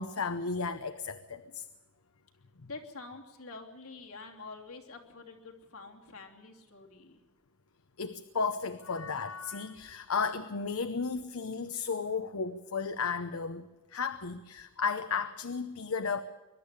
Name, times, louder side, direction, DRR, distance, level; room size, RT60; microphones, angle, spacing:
voice 1, 0.0-1.7 8.0-16.2, left 5 dB, 75° left, 10 dB, 0.8 m, -34 dB
voice 2, 2.6-7.2, left 3 dB, 90° left, 1 dB, 3.1 m, -47 dB
22.0 x 12.0 x 9.8 m, 1.2 s
head